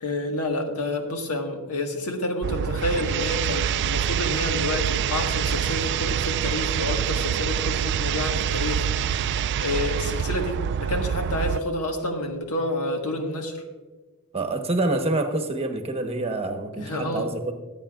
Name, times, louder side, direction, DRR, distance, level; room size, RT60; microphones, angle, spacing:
voice 1, 0.0-13.6 16.8-17.3, left 1 dB, 90° left, 3 dB, 1.6 m, -29 dB
sound 1, 2.4-11.6, right 8 dB, 50° right, 0.3 m, -26 dB
voice 2, 14.3-17.5, right 2 dB, 25° right, 5 dB, 1.1 m, -27 dB
24.0 x 8.7 x 2.4 m, 1.3 s
head